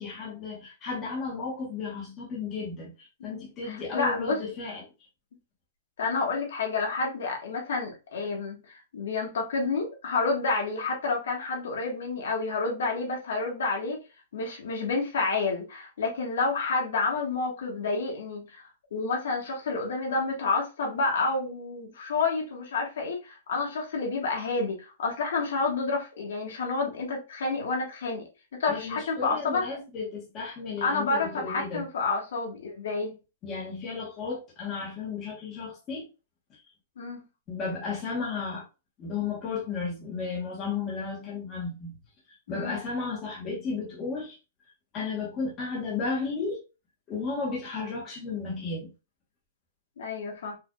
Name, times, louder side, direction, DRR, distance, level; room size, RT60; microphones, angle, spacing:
voice 1, 0.0-4.9 28.7-31.8 33.4-36.1 36.5-36.6 37.5-38.6 39.0-41.9 42.5-44.4 44.9-46.6 47.1-48.9, left 4 dB, 20° left, 1.1 m, -34 dB
voice 2, 3.3-4.4 6.0-14.0 14.3-28.2 28.6-29.6 30.8-33.2 37.0-37.2 42.5-42.8 50.0-50.6, left 3 dB, 70° left, 1.5 m, -29 dB
4.8 x 2.6 x 2.2 m
supercardioid pair, 180°, 0 cm